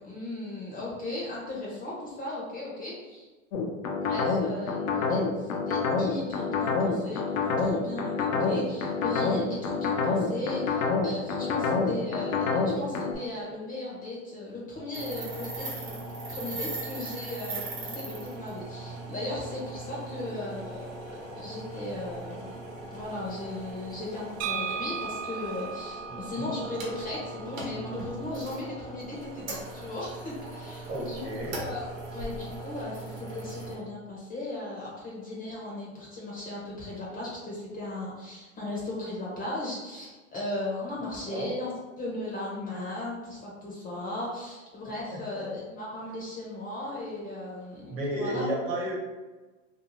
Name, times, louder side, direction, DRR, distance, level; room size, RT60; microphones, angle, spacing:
voice 1, 0.0-3.3 4.0-15.7 16.3-22.5 22.9-31.2 31.5-41.7 42.0-48.5, left 2 dB, 20° left, -5 dB, 0.7 m, -37 dB
sound 1, 3.5-13.1, left 4 dB, 85° left, 0.6 m, -27 dB
voice 2, 11.5-11.9 26.1-26.5 30.9-31.6 41.3-41.5 45.1-45.4 47.9-48.9, right 1 dB, 35° right, -3 dB, 1.2 m, -33 dB
sound 2, 14.9-33.7, right 2 dB, 85° right, 1.0 m, -39 dB
sound 3, 24.4-28.2, right 6 dB, 60° right, 0.4 m, -37 dB
2.6 x 2.3 x 3.0 m, 1.2 s
hypercardioid pair, 115°, 39 cm